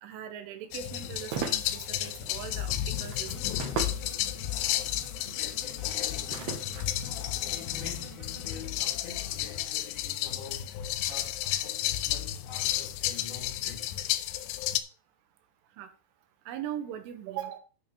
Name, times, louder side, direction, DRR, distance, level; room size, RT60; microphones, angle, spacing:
voice 1, 0.0-4.0 13.6-13.7 15.8-15.9 16.5-17.6, right 10 dB, 80° right, 3.7 m, -40 dB
sound 1, 0.7-14.8, left 12 dB, 85° left, 2.5 m, -32 dB
sound 2, 1.0-7.9, right 7 dB, 65° right, 3.2 m, -41 dB
sound 3, 3.3-8.6, right 4 dB, 30° right, 2.2 m, -51 dB
voice 2, 5.2-6.7 7.4-10.7 11.0-13.9, left 5 dB, 60° left, 3.9 m, -47 dB
9.9 x 5.7 x 4.8 m
omnidirectional pair, 5.7 m